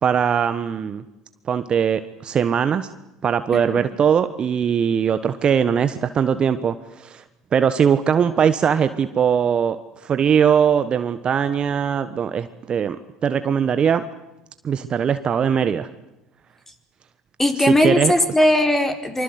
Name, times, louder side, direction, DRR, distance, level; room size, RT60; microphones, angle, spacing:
voice 1, 0.0-1.0 1.5-2.9 3.2-7.2 7.5-9.8 10.0-13.0 13.2-14.0 14.6-15.9 17.7-18.1, right 7 dB, 35° right, 11 dB, 1.3 m, -20 dB
voice 2, 3.5-3.8 17.4-19.2, left 1 dB, 10° left, 5 dB, 4.8 m, -19 dB
25.5 x 25.0 x 8.1 m, 0.93 s
hypercardioid pair, 70°, 3 cm